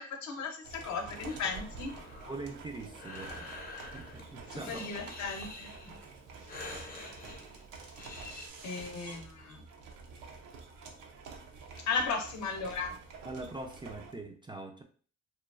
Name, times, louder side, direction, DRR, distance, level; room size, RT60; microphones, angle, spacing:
voice 1, 0.0-1.9 4.5-5.7 8.6-9.6 11.8-12.9, left 4 dB, 65° left, 3 dB, 0.7 m, -36 dB
sound 1, 0.6-14.1, right 4 dB, 85° right, 0.6 m, -48 dB
Breathing, 1.3-8.5, left 3 dB, 30° left, 0.6 m, -47 dB
voice 2, 2.3-3.5 3.9-4.9 13.2-14.8, right 2 dB, 15° right, 3 dB, 0.3 m, -42 dB
3.0 x 2.2 x 2.3 m, 0.43 s
cardioid pair, 90°, 30 cm